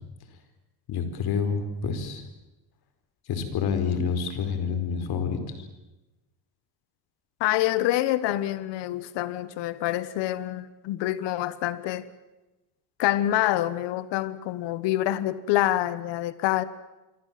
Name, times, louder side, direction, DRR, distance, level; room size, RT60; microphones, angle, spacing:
voice 1, 0.9-2.2 3.3-5.4, left 6 dB, 60° left, 9 dB, 4.9 m, -28 dB
voice 2, 7.4-12.1 13.0-16.6, left 14 dB, 80° left, 15 dB, 1.4 m, -26 dB
27.0 x 24.5 x 7.7 m, 1.1 s
cardioid pair, 125°, 42 cm